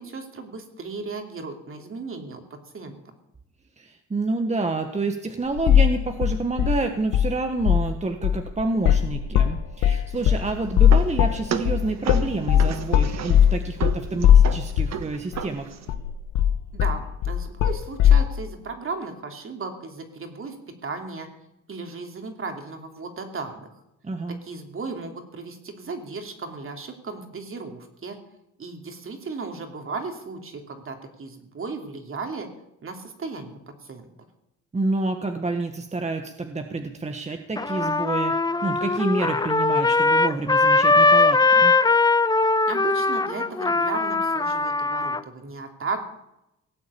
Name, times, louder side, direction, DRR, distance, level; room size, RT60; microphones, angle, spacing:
voice 1, 0.0-2.4 2.7-3.0 16.7-20.6 20.8-21.3 21.7-23.7 24.3-28.2 28.6-32.5 32.8-34.1 42.7-46.0, right 4 dB, 45° right, 5 dB, 3.0 m, -35 dB
voice 2, 3.8-15.7 24.0-24.4 34.7-38.3 38.6-41.7, right 3 dB, 20° right, 5 dB, 1.4 m, -28 dB
sound 1, 5.6-6.0 6.2-7.3 7.6-7.9 8.2-15.0 15.3-15.4 15.9-18.2, left 9 dB, 85° left, 1.2 m, -19 dB
sound 2, 10.1-15.9, right 8 dB, 60° right, 1.4 m, -35 dB
Trumpet, 37.6-45.2, left 3 dB, 15° left, 0.6 m, -20 dB
17.5 x 8.4 x 8.6 m, 0.87 s
cardioid pair, 90°, 30 cm